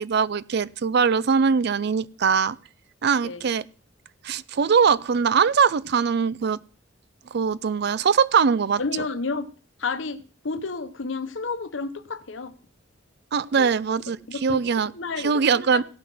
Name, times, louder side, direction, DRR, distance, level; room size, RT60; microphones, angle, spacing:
voice 1, 0.0-2.6 3.0-3.6 4.2-6.6 7.3-8.8 13.3-14.9 15.2-15.8, right 6 dB, 55° right, 19 dB, 0.4 m, -21 dB
voice 2, 8.8-9.5 9.8-12.5 13.6-13.7 14.3-14.6 14.9-15.4 15.7-15.8, left 4 dB, 70° left, 11 dB, 0.9 m, -31 dB
17.0 x 6.0 x 6.1 m, 0.41 s
head